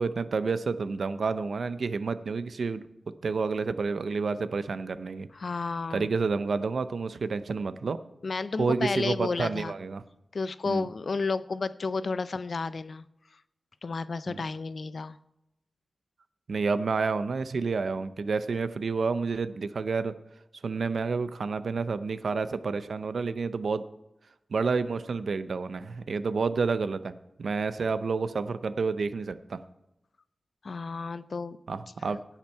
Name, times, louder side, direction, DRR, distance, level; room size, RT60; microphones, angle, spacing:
voice 1, 0.0-2.8 3.2-5.3 5.9-8.0 8.6-10.0 10.7-10.8 14.3-14.4 16.5-20.1 20.6-23.8 24.5-27.1 27.4-29.6 31.7-32.4, right 4 dB, 75° right, 13 dB, 0.6 m, -29 dB
voice 2, 5.3-6.1 8.2-9.7 10.3-13.1 13.8-15.2 30.6-31.6, left 4 dB, 60° left, 15 dB, 0.4 m, -32 dB
17.0 x 5.8 x 4.5 m, 0.89 s
wide cardioid pair, 115°, 0 cm